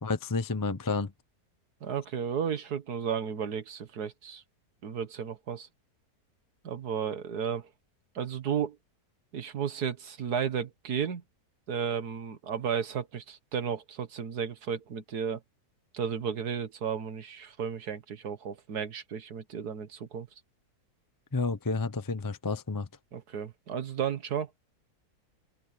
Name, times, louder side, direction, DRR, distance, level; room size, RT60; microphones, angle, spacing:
voice 1, 0.0-1.1 21.3-22.9, left 3 dB, 20° left, 0.6 m, -30 dB
voice 2, 1.8-4.4 4.8-5.7 6.6-7.7 8.2-8.8 9.3-11.2 11.7-15.4 15.9-20.3 23.1-24.5, right 7 dB, 75° right, 2.0 m, -33 dB
open air
omnidirectional pair, 1.7 m